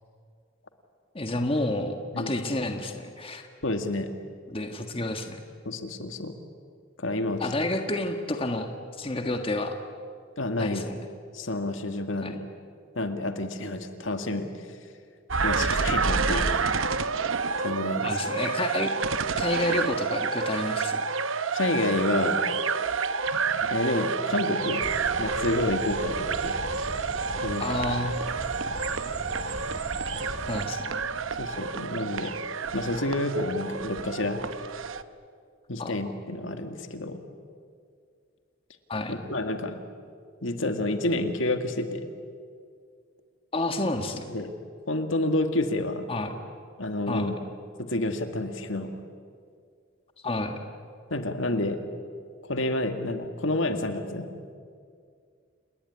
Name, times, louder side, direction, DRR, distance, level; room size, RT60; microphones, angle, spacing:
voice 1, 1.1-3.5 4.5-5.4 7.4-8.7 9.0-9.7 10.6-11.0 12.2-12.3 16.3-16.5 18.0-18.9 19.3-21.0 27.6-28.1 30.5-31.1 35.8-36.1 38.9-39.3 43.5-44.4 46.1-46.3 47.1-47.3 50.2-50.6, left 2 dB, 25° left, 5 dB, 1.6 m, -30 dB
voice 2, 3.6-4.1 5.7-6.3 7.0-7.4 10.4-10.9 11.3-12.5 12.9-14.5 15.4-16.5 17.6-18.1 21.5-22.4 23.6-24.9 25.2-26.6 27.4-27.6 31.4-32.3 32.7-34.4 35.7-37.2 39.1-39.8 40.4-42.1 44.3-44.5 44.9-46.1 46.8-47.4 47.8-48.9 51.1-51.8 52.5-54.3, left 2 dB, 70° left, 6 dB, 2.0 m, -29 dB
sound 1, 15.3-35.0, right 5 dB, 75° right, 0.9 m, -29 dB
sound 2, 24.8-30.7, right 1 dB, 35° right, 2.7 m, -38 dB
29.5 x 19.5 x 9.8 m, 2.2 s
head